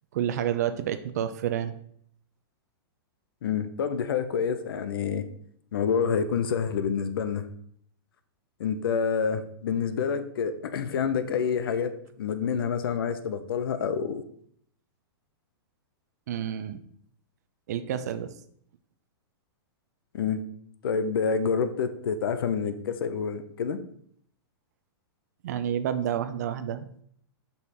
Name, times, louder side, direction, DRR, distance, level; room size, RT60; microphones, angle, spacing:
voice 1, 0.1-1.7 16.3-16.8 17.7-18.3 25.4-26.9, right 9 dB, 40° right, 11 dB, 0.4 m, -29 dB
voice 2, 3.4-5.2 5.7-7.5 8.6-14.2 20.1-20.4 20.8-23.8, left 6 dB, 60° left, 10 dB, 0.6 m, -28 dB
5.5 x 4.2 x 4.7 m, 0.65 s
supercardioid pair, 175°, 13 cm